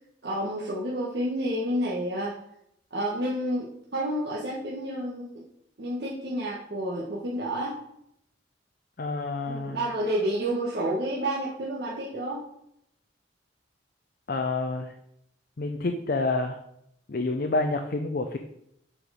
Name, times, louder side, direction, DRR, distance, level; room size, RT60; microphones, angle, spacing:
voice 1, 0.2-2.4 2.9-5.4 5.8-7.8 9.5-12.4, right 1 dB, 60° right, -6 dB, 1.4 m, -30 dB
voice 2, 9.0-9.8 14.3-14.9 15.6-16.6 17.1-18.4, left 3 dB, 50° left, 5 dB, 0.5 m, -28 dB
8.1 x 4.5 x 5.1 m, 0.75 s
head